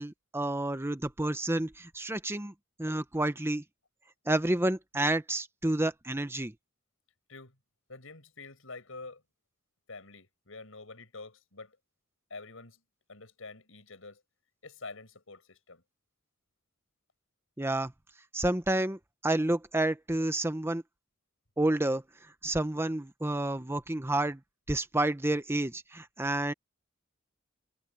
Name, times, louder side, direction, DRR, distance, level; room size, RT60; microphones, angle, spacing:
voice 1, 0.0-2.5 2.8-3.6 4.3-6.5 17.6-17.9 18.3-20.8 21.6-22.0 22.4-24.4 24.7-26.5, right 1 dB, 10° right, 0.9 m, -29 dB
voice 2, 7.9-9.2 9.9-11.8 12.3-12.8 13.1-14.2 14.6-15.8, left 3 dB, 85° left, 5.5 m, -47 dB
head